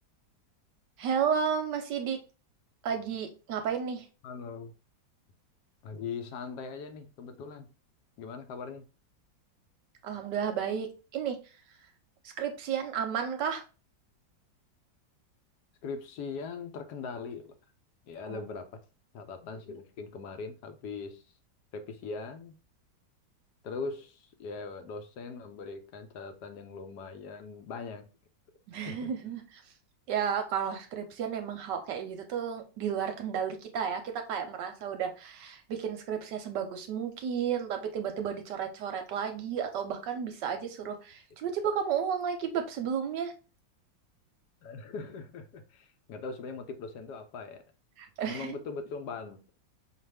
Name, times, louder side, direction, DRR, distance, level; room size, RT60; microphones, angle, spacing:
voice 1, 1.0-2.2 2.8-4.1 10.0-11.4 12.4-13.6 18.2-18.5 28.7-29.6 30.1-43.3 48.0-48.6, right 7 dB, 70° right, 1.2 m, -32 dB
voice 2, 4.2-4.7 5.8-7.7 8.2-8.9 15.8-17.6 18.1-18.7 19.1-21.2 21.7-22.5 23.6-28.1 28.9-29.0 44.6-47.6 48.2-49.6, left 4 dB, 65° left, 1.1 m, -40 dB
5.5 x 2.5 x 3.3 m
omnidirectional pair, 2.1 m